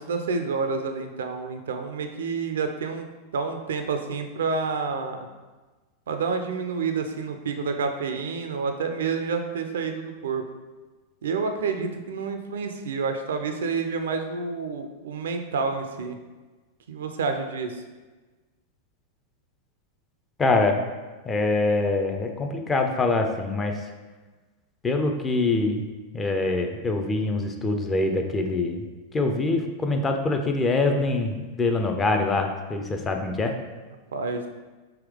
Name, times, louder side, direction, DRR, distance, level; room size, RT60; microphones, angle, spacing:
voice 1, 0.0-3.1 3.3-5.3 6.1-10.4 11.2-16.2 16.9-17.8 34.1-34.5, right 4 dB, 60° right, 6 dB, 0.3 m, -29 dB
voice 2, 20.4-20.8 21.3-23.8 24.8-25.8 26.1-28.9 29.1-33.5, left 3 dB, 20° left, 4 dB, 0.4 m, -24 dB
3.5 x 2.7 x 3.5 m, 1.3 s
figure-of-eight pair, 90°, 0 cm